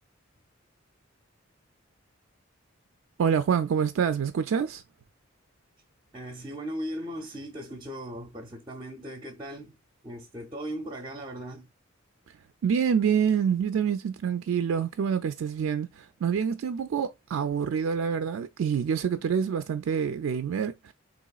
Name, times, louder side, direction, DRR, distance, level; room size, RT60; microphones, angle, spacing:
voice 1, 3.2-4.8 12.6-20.9, right 7 dB, 90° right, 0.4 m, -27 dB
voice 2, 6.1-9.8 10.0-11.7, equal, 25° right, 0.6 m, -38 dB
3.9 x 3.0 x 2.3 m
head